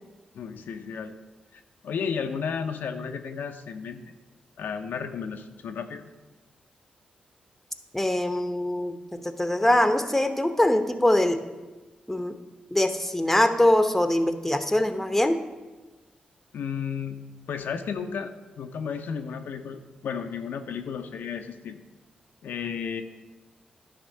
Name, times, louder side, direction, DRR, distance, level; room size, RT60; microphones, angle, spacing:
voice 1, 0.3-1.1 1.5-4.1 4.6-6.1 16.5-17.2 17.5-21.8 22.4-23.0, left 6 dB, 80° left, 6 dB, 0.6 m, -33 dB
voice 2, 7.9-11.4 12.1-12.4 12.7-15.4, left 1 dB, 5° left, 8 dB, 0.9 m, -23 dB
10.5 x 3.7 x 6.5 m, 1.2 s
supercardioid pair, 50°, 3 cm